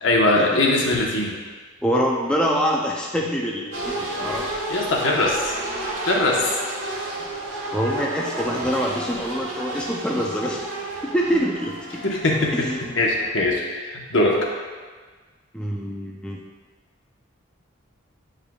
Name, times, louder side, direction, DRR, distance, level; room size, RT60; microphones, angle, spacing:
voice 1, 0.0-1.3 4.7-5.5 6.0-6.5 12.0-12.7 13.0-14.5, left 2 dB, 65° left, -2 dB, 1.0 m, -21 dB
voice 2, 1.8-4.5 7.7-10.6 11.0-12.2 12.5-13.0 15.5-16.4, equal, 5° left, -2 dB, 0.4 m, -25 dB
sound 1, 3.7-13.2, right 1 dB, 80° right, 1.4 m, -31 dB
8.8 x 4.9 x 2.3 m, 1.4 s
head